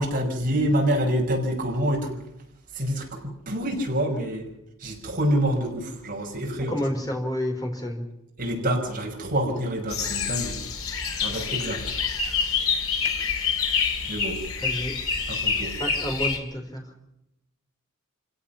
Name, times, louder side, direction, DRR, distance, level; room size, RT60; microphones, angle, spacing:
voice 1, 0.0-2.2 2.7-4.5 4.8-6.8 8.4-10.6 11.2-11.9 14.1-14.4 15.3-15.8, equal, 40° right, 0 dB, 5.9 m, -27 dB
voice 2, 6.7-8.0 14.6-14.9 15.8-16.8, equal, 15° left, 2 dB, 4.5 m, -29 dB
sound 1, 9.9-16.4, left 5 dB, 80° left, 3.6 m, -27 dB
27.0 x 17.0 x 5.9 m, 0.86 s
head